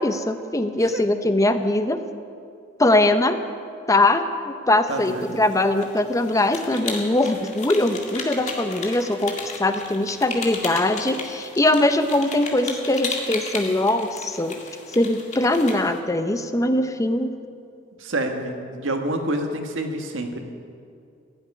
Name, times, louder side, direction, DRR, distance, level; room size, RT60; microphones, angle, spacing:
voice 1, 0.0-2.0 2.8-3.4 3.9-9.3 9.6-14.6 14.9-17.3, left 1 dB, 15° left, 9 dB, 0.7 m, -21 dB
sound 1, 4.9-16.0, left 4 dB, 35° left, 2.1 m, -35 dB
voice 2, 4.9-5.4 18.0-20.4, right 1 dB, 75° right, 4 dB, 1.7 m, -28 dB
16.5 x 7.9 x 9.8 m, 2.4 s
head